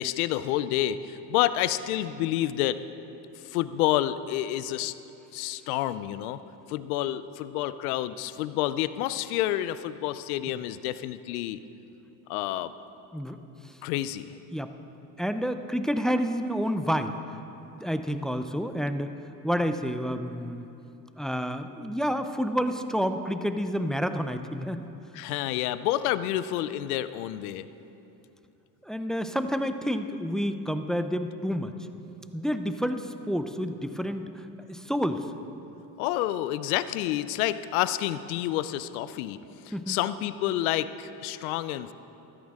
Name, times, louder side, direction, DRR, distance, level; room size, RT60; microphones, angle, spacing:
voice 1, 0.0-2.8 3.4-4.9 5.3-6.4 6.7-11.6 12.3-12.7 13.8-14.3 25.1-27.7 36.0-41.9, left 13 dB, 85° left, 14 dB, 0.6 m, -29 dB
voice 2, 15.2-17.2 17.8-19.1 19.4-20.7 21.2-24.8 28.8-31.7 32.3-35.2 39.7-40.0, equal, ahead, 9 dB, 0.5 m, -29 dB
14.5 x 13.5 x 3.6 m, 2.9 s
supercardioid pair, 90°, 42 cm